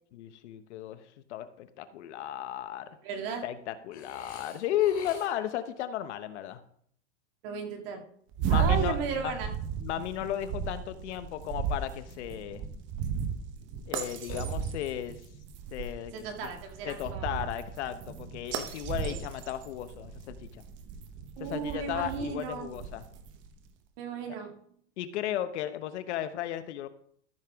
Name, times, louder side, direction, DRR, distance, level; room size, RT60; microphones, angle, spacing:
voice 1, 0.1-2.9 3.4-6.6 8.4-9.3 9.8-12.6 13.9-15.2 15.7-16.1 16.8-20.6 21.4-23.0 25.0-26.9, left 11 dB, 75° left, 11 dB, 1.1 m, -34 dB
voice 2, 3.0-3.5 7.4-8.0 8.5-9.5 16.1-17.4 19.0-19.2 21.4-22.7 24.0-24.5, right 6 dB, 55° right, 3 dB, 2.1 m, -35 dB
Burping eructation, 3.9-5.6 14.3-15.1, left 4 dB, 25° left, 2.8 m, -47 dB
sound 1, 8.3-23.5, right 7 dB, 35° right, 1.0 m, -35 dB
13.5 x 6.7 x 3.6 m, 0.64 s
supercardioid pair, 150°, 35 cm